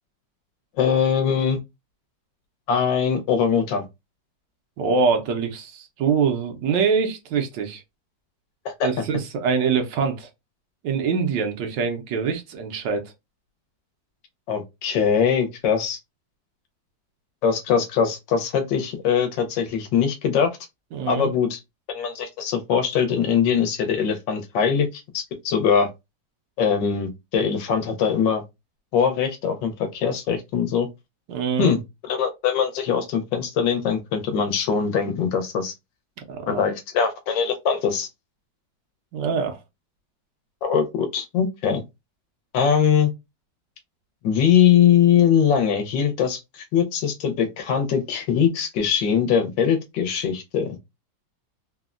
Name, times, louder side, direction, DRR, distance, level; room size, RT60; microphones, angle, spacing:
voice 1, 0.8-1.6 2.7-3.9 8.6-8.9 14.5-16.0 17.4-20.5 21.1-21.6 21.9-25.9 26.6-28.4 28.9-30.9 31.6-35.7 36.5-38.1 40.6-41.8 42.5-43.1 44.2-50.8, left 7 dB, 85° left, 1.4 m, -22 dB
voice 2, 4.8-7.8 8.8-10.3 10.8-13.0 20.9-21.3 31.3-31.7 36.3-36.6 39.1-39.6, right 5 dB, 80° right, 1.3 m, -24 dB
3.6 x 2.1 x 2.4 m
omnidirectional pair, 2.0 m